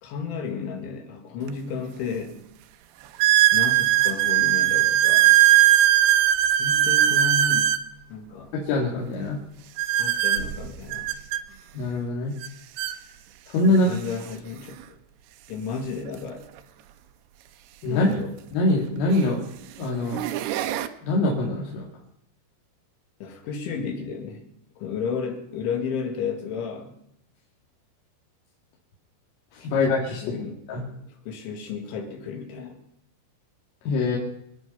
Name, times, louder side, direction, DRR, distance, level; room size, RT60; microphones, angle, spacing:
voice 1, 0.0-2.4 3.5-5.3 6.6-7.8 8.1-8.6 10.0-11.2 13.7-15.0 15.5-16.5 17.9-18.3 23.2-24.5 24.8-27.0 29.6-32.8, left 6 dB, 75° left, 5 dB, 4.2 m, -33 dB
sound 1, 1.5-1.6 2.2-2.3 3.2-7.9 9.8-11.4 12.4-12.5 12.8-13.0 13.8-13.9 16.1-16.2 18.2-18.3 19.1-19.4 19.9-20.9, right 13 dB, 85° right, 2.3 m, -20 dB
voice 2, 8.5-9.4 11.7-12.3 13.5-14.0 17.8-18.1 18.5-19.4 19.8-20.2 21.0-21.9 29.5-30.4 30.7-30.8 33.8-34.2, left 2 dB, 90° left, -3 dB, 4.9 m, -23 dB
26.5 x 9.1 x 5.5 m, 0.76 s
omnidirectional pair, 5.7 m